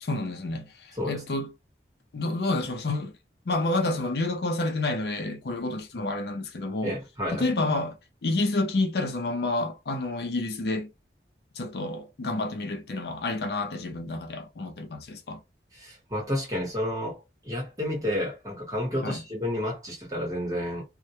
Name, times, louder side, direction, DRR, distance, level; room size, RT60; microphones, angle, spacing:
voice 1, 0.0-1.5 2.1-3.1 3.5-7.0 7.3-10.9 11.6-15.4 19.0-19.2, left 2 dB, 60° left, 0.5 m, -29 dB
voice 2, 6.8-7.5 15.7-20.8, left 1 dB, 20° right, 1.0 m, -31 dB
2.2 x 2.1 x 2.7 m
head